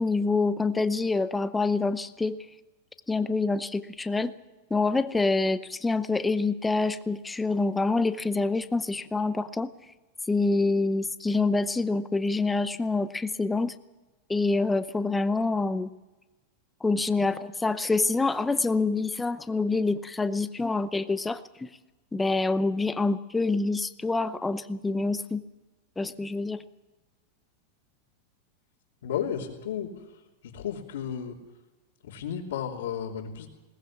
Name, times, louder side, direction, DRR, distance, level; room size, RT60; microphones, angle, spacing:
voice 1, 0.0-2.4 3.1-4.3 4.7-9.7 10.3-13.7 14.3-15.9 16.8-21.7 22.1-25.4 26.0-26.6, left 3 dB, 5° left, 12 dB, 0.8 m, -26 dB
voice 2, 29.0-31.4 32.0-33.5, left 8 dB, 80° left, -6 dB, 3.0 m, -33 dB
21.0 x 19.0 x 7.3 m, 1.1 s
supercardioid pair, 160°, 0 cm